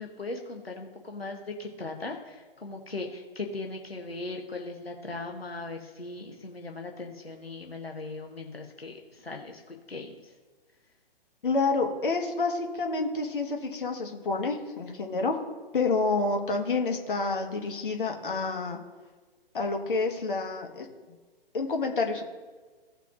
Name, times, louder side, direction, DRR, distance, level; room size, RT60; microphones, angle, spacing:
voice 1, 0.0-10.3, left 3 dB, 90° left, 2 dB, 1.0 m, -39 dB
voice 2, 11.4-15.4 15.7-18.8 19.5-20.9 21.5-22.2, left 3 dB, 60° left, 3 dB, 1.4 m, -28 dB
16.5 x 5.7 x 2.5 m, 1.3 s
figure-of-eight pair, 130°, 30 cm